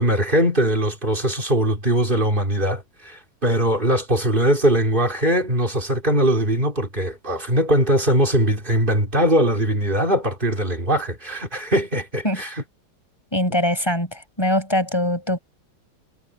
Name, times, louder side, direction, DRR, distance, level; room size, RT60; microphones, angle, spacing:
voice 1, 0.0-12.6, right 1 dB, 25° right, 4.2 m, -21 dB
voice 2, 13.3-15.4, left 1 dB, 10° left, 6.2 m, -22 dB
omnidirectional pair, 2.2 m